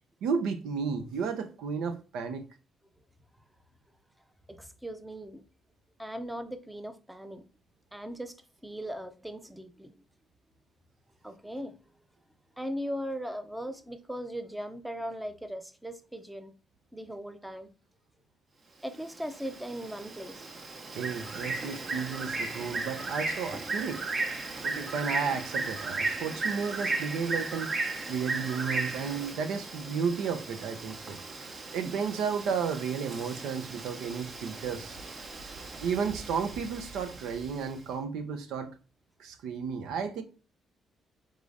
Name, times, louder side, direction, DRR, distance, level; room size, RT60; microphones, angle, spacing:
voice 1, 0.2-2.4 20.9-24.0 24.6-27.7 28.1-31.2 31.7-35.0 35.8-38.7 39.2-40.2, right 6 dB, 85° right, 0.6 m, -33 dB
voice 2, 4.5-5.4 6.0-7.5 7.9-8.4 8.6-9.9 11.2-11.7 12.6-16.5 16.9-17.7 18.8-20.5 24.6-24.8, equal, 5° right, 0.6 m, -38 dB
Bird, 18.9-37.7, right 3 dB, 45° right, 0.9 m, -36 dB
4.8 x 3.7 x 2.6 m
cardioid pair, 90°, 0 cm